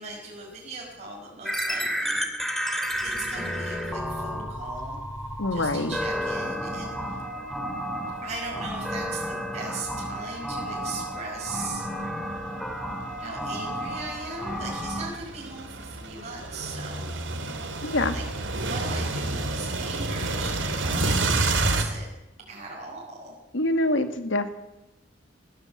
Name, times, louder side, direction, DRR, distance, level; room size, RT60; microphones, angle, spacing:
voice 1, 0.0-2.2 3.0-5.0 5.5-7.3 8.2-11.9 13.2-17.1 18.1-18.3 18.5-22.1 22.5-23.3, right 3 dB, 40° right, -3 dB, 5.4 m, -39 dB
sound 1, 1.4-15.1, equal, ahead, 2.7 m, -32 dB
sound 2, 5.0-5.3 5.8-5.9 6.8-8.5 9.2-21.8, right 2 dB, 90° right, 2.9 m, -30 dB
voice 2, 5.4-6.0 17.8-18.2 23.5-24.5, left 1 dB, 80° left, 8 dB, 1.9 m, -25 dB
19.0 x 16.0 x 8.5 m, 0.96 s
head